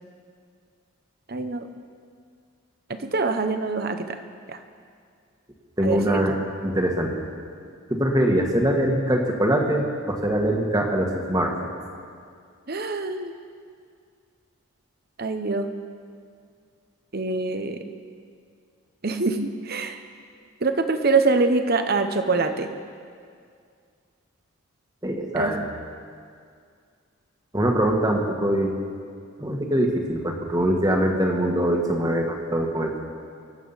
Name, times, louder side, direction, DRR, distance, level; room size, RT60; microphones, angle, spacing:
voice 1, 1.3-1.7 2.9-4.2 4.5-4.6 5.8-6.2 12.7-13.3 15.2-15.7 17.1-17.8 19.0-20.0 20.6-22.7 25.4-25.5, right 3 dB, 45° right, 8 dB, 0.9 m, -24 dB
voice 2, 5.8-6.3 6.6-7.3 7.9-11.5 25.0-25.6 27.5-28.7 29.4-33.0, right 1 dB, 15° right, 1 dB, 1.5 m, -23 dB
25.0 x 8.4 x 5.7 m, 2.2 s
head